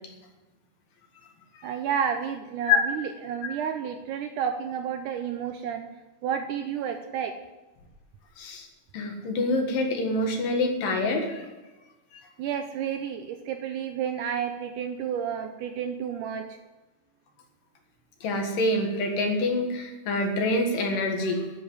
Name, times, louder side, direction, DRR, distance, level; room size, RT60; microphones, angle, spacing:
voice 1, 1.6-5.9 6.2-7.3 12.4-16.5, right 8 dB, 80° right, 6 dB, 1.9 m, -31 dB
voice 2, 8.4-8.7 8.9-11.5 12.1-12.2 18.2-21.5, left 2 dB, 70° left, 3 dB, 3.1 m, -26 dB
11.0 x 7.2 x 9.5 m, 1.1 s
omnidirectional pair, 4.3 m